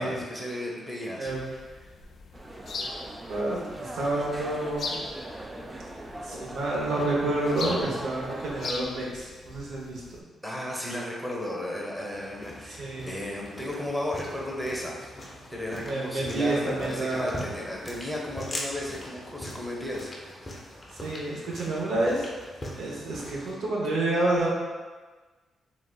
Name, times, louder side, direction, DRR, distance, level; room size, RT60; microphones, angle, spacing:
voice 1, 0.0-1.3 10.4-15.1 15.5-20.6, left 1 dB, ahead, -3 dB, 0.8 m, -34 dB
sound 1, 1.2-10.2, left 3 dB, 60° left, 0.3 m, -41 dB
sound 2, 2.3-8.7, right 1 dB, 20° right, 0.3 m, -40 dB
voice 2, 3.3-5.0 6.2-10.0 12.7-13.1 15.8-17.4 21.0-22.3 22.8-24.5, right 2 dB, 80° right, -4 dB, 0.8 m, -29 dB
sound 3, 12.0-23.5, left 1 dB, 35° left, 0.7 m, -42 dB
3.9 x 2.4 x 2.3 m, 1.3 s
cardioid pair, 75°, 0 cm